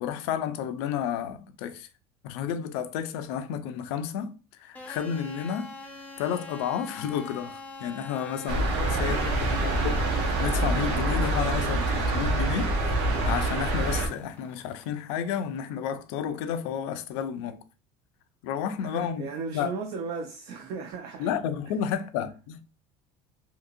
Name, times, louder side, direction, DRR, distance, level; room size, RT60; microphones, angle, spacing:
voice 1, 0.0-1.9 2.2-5.7 6.2-9.2 9.5-12.9 13.2-17.6 18.4-19.3 19.5-19.7 21.2-22.6, left 8 dB, 85° left, 0.4 m, -31 dB
sound 1, 4.7-14.9, left 3 dB, 10° left, 0.6 m, -45 dB
sound 2, 8.5-14.1, right 2 dB, 80° right, 0.8 m, -26 dB
voice 2, 8.7-9.8 18.8-21.3, right 5 dB, 55° right, 0.5 m, -37 dB
2.8 x 2.7 x 2.5 m
cardioid pair, 145°, 13 cm